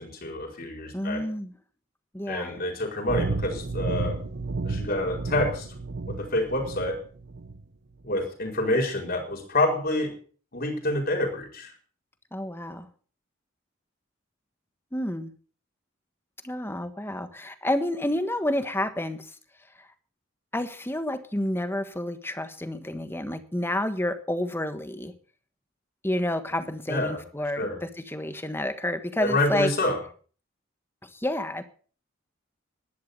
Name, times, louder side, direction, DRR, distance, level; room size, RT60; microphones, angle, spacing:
voice 1, 0.0-1.2 2.3-4.2 4.6-5.7 6.1-7.0 8.0-10.1 10.5-11.7 26.9-27.2 27.5-27.8 29.2-30.0, left 1 dB, 50° left, 3 dB, 4.7 m, -27 dB
voice 2, 0.9-1.5 2.1-2.6 12.3-12.9 14.9-15.3 16.4-19.2 19.8-19.9 20.5-25.1 26.0-29.7 31.0-31.6, left 1 dB, 10° left, 10 dB, 1.3 m, -29 dB
sound 1, 3.1-7.6, right 3 dB, 55° right, 0.7 m, -32 dB
12.0 x 10.5 x 6.8 m, 0.42 s
head